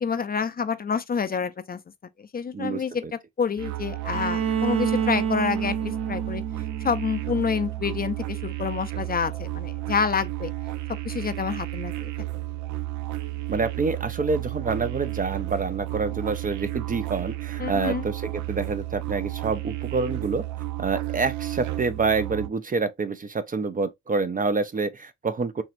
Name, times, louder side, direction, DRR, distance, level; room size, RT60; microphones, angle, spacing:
voice 1, 0.0-1.8 2.3-6.4 6.8-10.5 11.0-12.1 17.6-18.0, left 6 dB, 30° left, 0.5 m, -28 dB
voice 2, 2.5-3.1 13.5-20.4 20.8-25.6, right 4 dB, 30° right, 0.5 m, -27 dB
sound 1, 3.6-22.5, right 17 dB, 75° right, 0.5 m, -33 dB
Bowed string instrument, 4.1-8.0, right 7 dB, 50° right, 0.9 m, -28 dB
4.4 x 3.2 x 2.5 m
cardioid pair, 90°, 30 cm